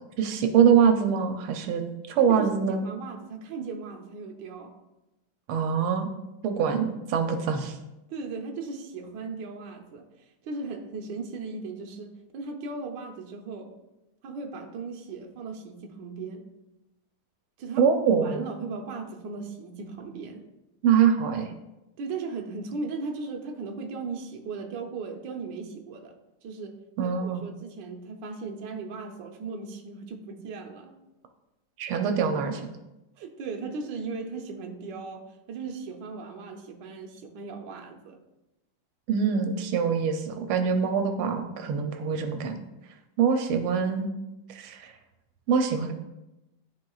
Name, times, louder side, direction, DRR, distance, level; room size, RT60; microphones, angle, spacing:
voice 1, 0.2-2.8 5.5-6.1 6.4-7.8 17.8-18.4 20.8-21.5 27.0-27.4 31.8-32.7 39.1-42.6 43.2-44.1 44.5-44.9 45.5-45.9, right 7 dB, 85° right, 6 dB, 1.5 m, -24 dB
voice 2, 2.2-4.7 8.1-10.0 10.4-13.7 14.2-16.4 17.6-20.4 22.0-26.1 26.4-26.8 27.0-30.9 33.2-38.2, right 4 dB, 65° right, 3 dB, 1.4 m, -37 dB
12.5 x 4.4 x 2.3 m, 0.97 s
omnidirectional pair, 2.3 m